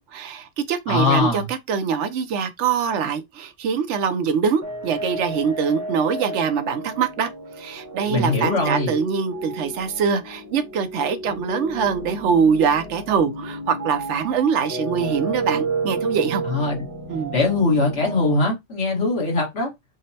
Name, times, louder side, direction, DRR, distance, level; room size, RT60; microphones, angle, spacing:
voice 1, 0.0-7.3 7.6-16.4 17.1-17.3, right 6 dB, 75° right, 0.9 m, -23 dB
voice 2, 0.9-1.5 8.1-8.9 16.4-16.8 17.3-19.7, left 3 dB, 75° left, 1.8 m, -21 dB
sound 1, 4.6-18.3, right 2 dB, 20° right, 0.6 m, -32 dB
5.1 x 2.1 x 2.7 m
omnidirectional pair, 1.2 m